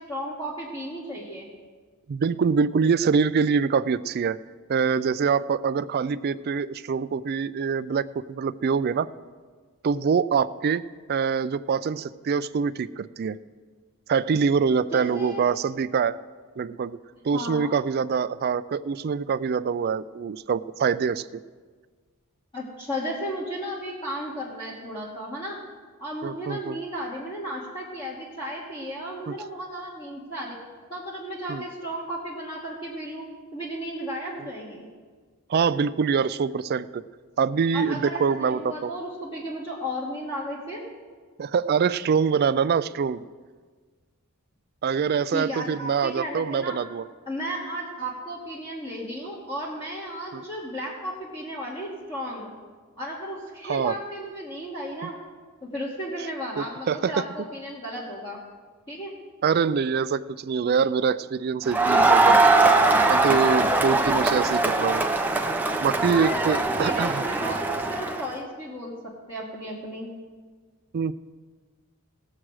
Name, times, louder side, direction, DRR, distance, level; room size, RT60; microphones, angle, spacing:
voice 1, 0.0-1.5 14.9-15.4 17.3-17.8 22.5-25.6 26.0-30.6 30.9-33.2 33.5-34.9 37.7-40.8 45.3-46.8 47.3-52.5 53.0-55.2 55.6-58.4 58.9-59.1 66.1-70.1, equal, 25° left, -5 dB, 1.6 m, -34 dB
voice 2, 2.1-4.4 4.7-9.1 9.8-10.8 11.1-13.4 14.1-16.2 16.6-17.0 17.2-21.4 26.2-26.8 29.3-29.4 31.5-31.6 35.5-37.0 37.4-38.9 41.4-43.2 44.8-47.0 50.3-50.4 53.6-53.9 55.0-55.1 56.6-57.2 59.4-62.4 63.1-65.0 65.8-67.2 70.9-71.1, right 6 dB, 45° right, 16 dB, 0.3 m, -24 dB
Crowd, 61.7-68.3, right 2 dB, 10° right, 0.6 m, -21 dB
18.5 x 7.5 x 4.8 m, 1.5 s
head